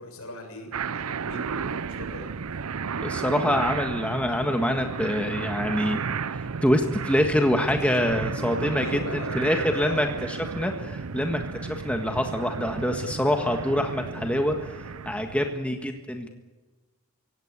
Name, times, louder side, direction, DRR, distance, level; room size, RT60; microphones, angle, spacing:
voice 1, 0.0-2.3 7.7-8.1 8.8-10.0 16.1-16.3, left 1 dB, 75° left, 4 dB, 6.9 m, -39 dB
sound 1, 0.7-15.6, right 5 dB, 80° right, 0.6 m, -33 dB
voice 2, 3.0-6.0 6.3-14.7 15.0-16.3, equal, 5° left, 4 dB, 1.6 m, -25 dB
24.5 x 17.0 x 8.3 m, 1.2 s
head